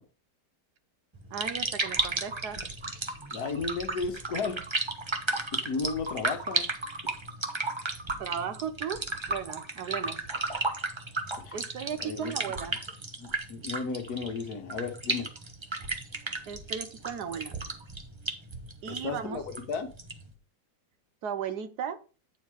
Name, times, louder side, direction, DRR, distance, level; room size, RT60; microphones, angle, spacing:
sound 1, 1.1-20.3, right 2 dB, 25° right, 0.6 m, -34 dB
voice 1, 1.3-2.6 8.2-10.2 11.5-12.8 16.5-17.5 18.8-19.4 21.2-22.0, right 8 dB, 75° right, 1.3 m, -36 dB
voice 2, 3.3-4.6 5.5-6.7 11.4-11.6 12.0-12.3 13.2-15.3 18.8-19.4 19.7-19.9, left 4 dB, 65° left, 1.6 m, -34 dB
9.3 x 4.6 x 4.8 m
omnidirectional pair, 1.8 m